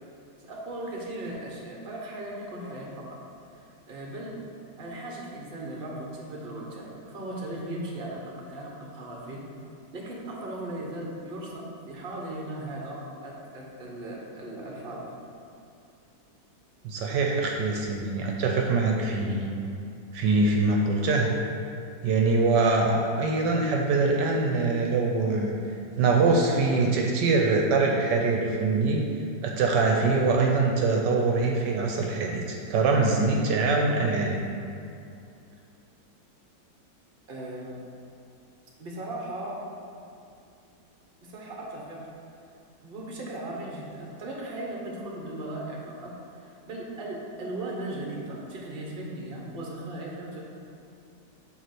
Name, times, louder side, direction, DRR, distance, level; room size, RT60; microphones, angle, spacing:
voice 1, 0.4-3.2 3.5-4.4 4.8-9.4 9.9-15.1 37.3-37.8 38.8-39.6 41.2-42.0 42.8-50.4, right 1 dB, 35° right, -2 dB, 1.1 m, -37 dB
voice 2, 16.8-19.5 20.1-21.3 22.0-25.5 26.0-29.0 29.4-34.4, right 3 dB, 75° right, 0 dB, 1.3 m, -23 dB
8.1 x 3.1 x 5.9 m, 2.5 s
omnidirectional pair, 1.9 m